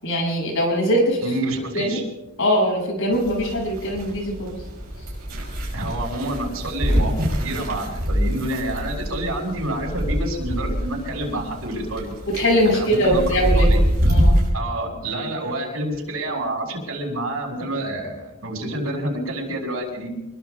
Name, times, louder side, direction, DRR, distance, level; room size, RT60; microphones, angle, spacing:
voice 1, 0.0-1.2 1.7-2.0 2.4-4.5 12.3-13.7 14.1-14.4, equal, 65° left, -1 dB, 7.5 m, -21 dB
voice 2, 1.2-2.0 5.7-12.1 12.6-13.8 14.5-20.1, right 1 dB, 80° right, 0 dB, 6.2 m, -28 dB
sound 1, 3.1-14.5, equal, 45° right, 6.4 m, -24 dB
26.0 x 23.0 x 2.4 m, 0.95 s
head